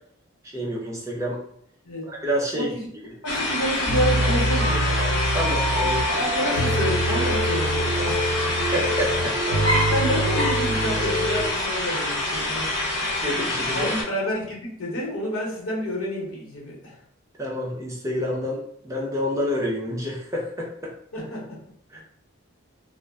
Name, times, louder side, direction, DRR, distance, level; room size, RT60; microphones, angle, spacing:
voice 1, 0.5-1.4 2.1-2.7 5.3-6.0 8.7-9.4 13.2-13.9 17.4-20.9 21.9-22.0, equal, 15° right, -3 dB, 0.4 m, -28 dB
voice 2, 2.5-2.9 3.2-5.0 5.8-8.5 9.7-12.7 13.3-17.0 21.1-21.6 21.9-22.0, equal, 90° left, -2 dB, 0.9 m, -29 dB
sound 1, 3.3-14.0, left 2 dB, 60° left, 0.9 m, -26 dB
sound 2, 3.9-11.5, right 1 dB, 45° right, 0.9 m, -25 dB
2.2 x 2.0 x 3.4 m, 0.67 s
head